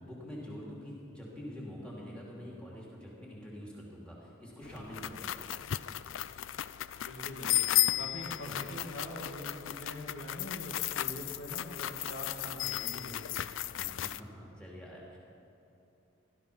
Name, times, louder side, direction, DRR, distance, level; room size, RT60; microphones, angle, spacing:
voice 1, 0.0-5.4 8.4-8.6 13.7-15.2, equal, 5° left, -5 dB, 2.8 m, -46 dB
sound 1, 4.6-14.2, left 14 dB, 70° left, 0.4 m, -34 dB
voice 2, 7.0-13.2, left 1 dB, 85° left, 0 dB, 2.3 m, -43 dB
16.5 x 12.5 x 5.6 m, 2.9 s
head